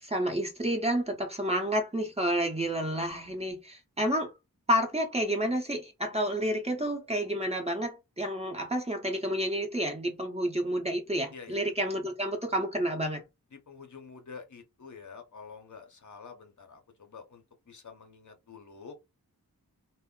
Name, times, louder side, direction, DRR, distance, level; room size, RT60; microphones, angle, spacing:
voice 1, 0.0-4.3 4.7-13.2, equal, 15° right, 1.0 m, -30 dB
voice 2, 13.5-18.9, left 5 dB, 55° left, 0.7 m, -48 dB
2.1 x 2.0 x 3.7 m
cardioid pair, 50°, 36 cm